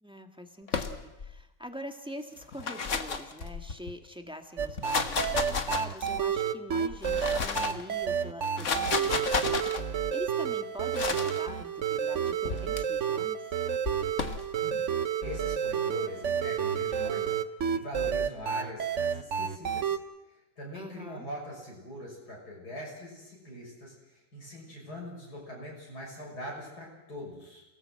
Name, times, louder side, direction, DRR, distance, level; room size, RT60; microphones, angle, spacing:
voice 1, 0.0-9.4 9.8-13.5 20.7-21.3, equal, 5° right, 5 dB, 1.8 m, -44 dB
sound 1, 0.7-1.3 2.4-3.9 4.6-6.3 6.9-7.8 8.4-9.8 10.9-11.4 12.4-12.8 13.8-14.4, left 5 dB, 45° left, 1.6 m, -32 dB
sound 2, 4.6-20.0, right 8 dB, 50° right, 1.1 m, -30 dB
voice 2, 14.5-14.9 15.2-17.3 17.7-20.0 20.3-27.6, left 1 dB, 60° left, -3 dB, 7.0 m, -42 dB
28.5 x 17.5 x 7.8 m, 0.99 s
omnidirectional pair, 1.9 m